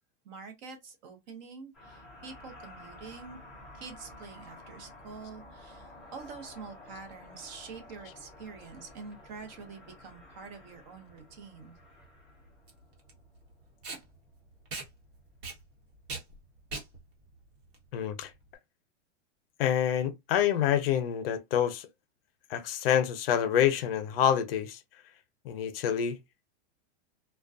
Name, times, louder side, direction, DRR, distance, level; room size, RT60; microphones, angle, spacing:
voice 1, 0.2-3.4 3.7-11.8, right 5 dB, 40° right, 0.7 m, -46 dB
sound 1, 1.7-14.4, left 1 dB, ahead, 0.3 m, -52 dB
Packing tape duct tape, 11.1-18.5, right 3 dB, 60° right, 1.0 m, -43 dB
voice 2, 17.9-18.3 19.6-21.9 22.5-24.8 25.4-26.2, left 9 dB, 55° left, 0.5 m, -27 dB
2.4 x 2.2 x 2.3 m
supercardioid pair, 165°, 35 cm